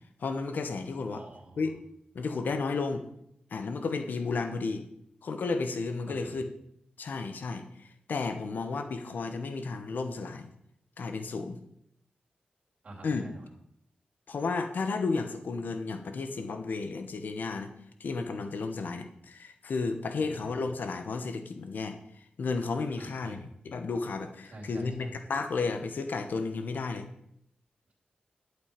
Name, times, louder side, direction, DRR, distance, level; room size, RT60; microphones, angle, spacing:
voice 1, 0.2-1.2 1.6-1.7 2.1-3.0 3.5-4.8 5.2-6.4 7.0-10.5 11.0-11.6 13.0-13.2 14.3-17.7 18.0-22.0 22.4-27.1, left 4 dB, 80° left, 7 dB, 1.1 m, -33 dB
voice 2, 1.1-1.7 6.1-6.4 12.8-13.5 20.3-20.5 23.0-23.4 24.5-25.2, right 1 dB, 45° right, -2 dB, 3.0 m, -47 dB
11.5 x 8.1 x 5.2 m, 0.74 s
wide cardioid pair, 160°, 3 cm